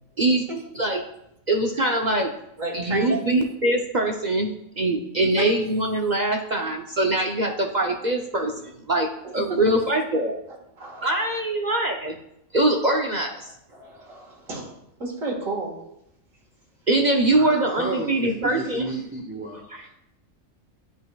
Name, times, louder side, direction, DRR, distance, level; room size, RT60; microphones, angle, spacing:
voice 1, 1.5-2.3 2.7-4.5 4.8-9.1 9.3-10.3 11.0-12.2 12.5-13.5 16.9-18.9 19.7-19.8, right 2 dB, 50° right, 2 dB, 0.6 m, -23 dB
voice 2, 2.6-3.2 5.4-5.5 9.2-9.6 10.5-11.2 13.7-14.7 15.0-15.8, right 3 dB, 90° right, -2 dB, 2.0 m, -32 dB
voice 3, 17.3-19.9, right 2 dB, 10° right, -1 dB, 0.8 m, -33 dB
10.5 x 5.4 x 2.3 m, 0.79 s
omnidirectional pair, 1.3 m